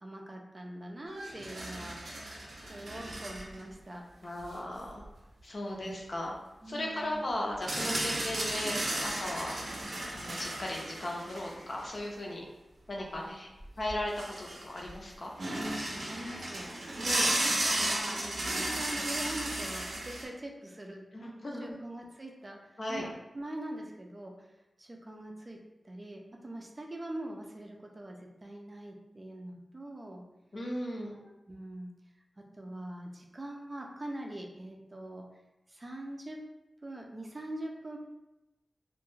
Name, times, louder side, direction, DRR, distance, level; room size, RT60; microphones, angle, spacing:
voice 1, 0.0-2.0 2.6-4.0 5.7-6.0 6.6-7.3 9.3-9.4 15.5-16.7 17.0-21.0 21.6-22.6 22.9-24.3 24.8-25.6 25.8-30.2 31.1-31.9 32.6-35.2 35.7-36.4 36.8-38.0, right 1 dB, 35° right, 1 dB, 0.4 m, -43 dB
sound 1, 1.1-3.6 4.2-4.3 7.6-12.0 13.6-13.7 13.9-14.9 15.4-20.2, right 1 dB, 85° right, 0.6 m, -34 dB
voice 2, 4.2-5.0 5.4-6.3 6.7-9.5 10.1-12.4 12.9-13.5 13.8-15.3 17.0-17.3 21.1-21.8 22.8-23.1 30.5-31.2, left 1 dB, 55° left, -1 dB, 0.5 m, -37 dB
2.3 x 2.1 x 3.0 m, 0.96 s
wide cardioid pair, 75°, 0 cm